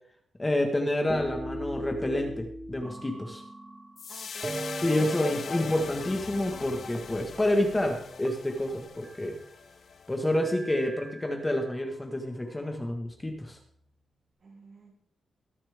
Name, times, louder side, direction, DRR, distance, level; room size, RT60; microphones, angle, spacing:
voice 1, 0.4-3.4 4.8-9.4 10.1-13.6, left 1 dB, 15° left, 3 dB, 1.6 m, -28 dB
sound 1, 1.1-4.0 4.4-6.3 6.5-6.6 6.9-7.1 7.4-7.6 7.8-9.5 10.3-11.9 12.6-13.5, right 1 dB, 20° right, 1.4 m, -41 dB
sound 2, 4.0-10.4, left 6 dB, 55° left, 0.7 m, -40 dB
voice 2, 4.1-5.2 14.4-14.9, right 3 dB, 50° right, -3 dB, 5.6 m, -50 dB
21.5 x 7.3 x 3.6 m, 0.65 s
wide cardioid pair, 145°, 0 cm